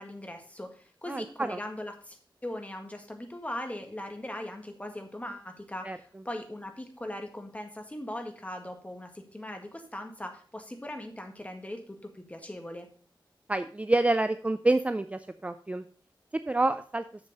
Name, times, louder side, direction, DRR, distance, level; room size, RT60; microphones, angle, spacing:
voice 1, 0.0-12.9, left 1 dB, 15° left, 4 dB, 1.7 m, -40 dB
voice 2, 1.1-1.6 5.8-6.0 13.5-15.8 16.3-17.0, right 2 dB, 15° right, 11 dB, 0.4 m, -27 dB
7.3 x 6.8 x 5.3 m, 0.43 s
wide cardioid pair, 105°, 9 cm